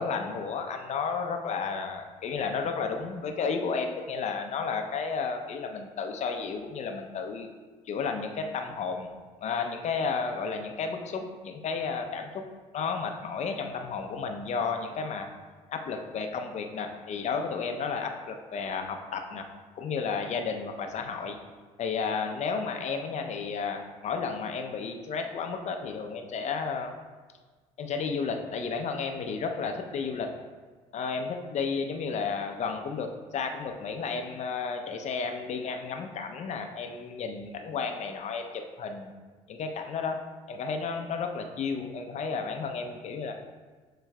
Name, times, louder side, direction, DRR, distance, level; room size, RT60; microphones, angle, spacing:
voice 1, 0.0-7.5 7.9-9.1 9.4-12.4 12.7-15.3 15.7-19.5 19.8-21.4 21.8-26.9 27.8-30.3 30.9-38.5 38.8-39.1 39.5-40.2 40.5-43.3, left 5 dB, 45° left, 5 dB, 0.6 m, -32 dB
6.9 x 3.3 x 2.2 m, 1.4 s
hypercardioid pair, 65°, 17 cm